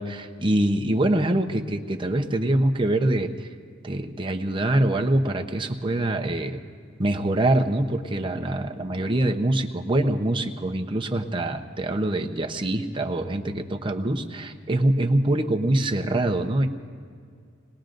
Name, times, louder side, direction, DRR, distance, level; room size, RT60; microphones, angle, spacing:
voice 1, 0.0-3.3 3.8-6.6 7.0-16.7, right 1 dB, 25° right, 3 dB, 0.8 m, -24 dB
27.5 x 20.0 x 2.6 m, 2.2 s
head